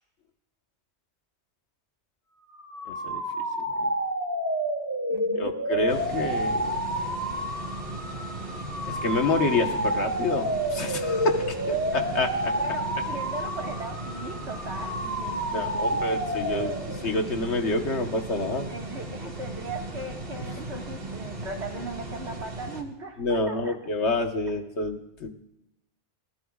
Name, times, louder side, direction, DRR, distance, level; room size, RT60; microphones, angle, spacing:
sound 1, 2.5-17.2, right 1 dB, 15° right, 2.5 m, -30 dB
voice 1, 2.9-3.2 3.8-3.9 5.4-6.8 8.9-12.5 15.0-15.1 15.5-18.7 23.2-25.3, left 2 dB, 85° left, 4 dB, 1.6 m, -28 dB
voice 2, 5.1-5.6 11.9-12.1 12.6-16.0 18.7-23.8, right 3 dB, 85° right, 2 dB, 2.0 m, -38 dB
sound 2, 5.9-22.8, right 2 dB, 60° right, 2.2 m, -37 dB
27.0 x 18.5 x 2.4 m, 0.88 s
omnidirectional pair, 1.1 m